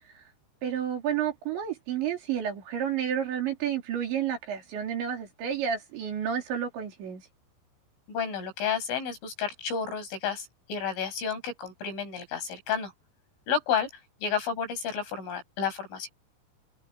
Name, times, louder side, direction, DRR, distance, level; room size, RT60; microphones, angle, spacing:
voice 1, 0.6-7.2, right 9 dB, 70° right, 6.2 m, -30 dB
voice 2, 8.1-12.9 13.5-13.9 14.2-16.1, left 7 dB, 90° left, 10.5 m, -31 dB
omnidirectional pair, 5.5 m